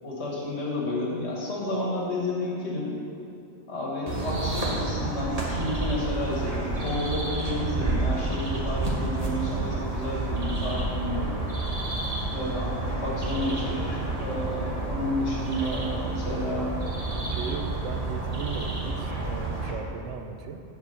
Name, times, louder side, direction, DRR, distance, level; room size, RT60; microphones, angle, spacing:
voice 1, 0.0-2.9 3.7-11.3 12.3-16.7, left 1 dB, 60° left, -4 dB, 1.6 m, -31 dB
sound 1, 4.1-19.7, right 2 dB, 30° right, 1.1 m, -30 dB
voice 2, 17.3-20.6, right 5 dB, 75° right, 6 dB, 0.9 m, -37 dB
7.3 x 4.6 x 6.7 m, 2.9 s
omnidirectional pair, 1.3 m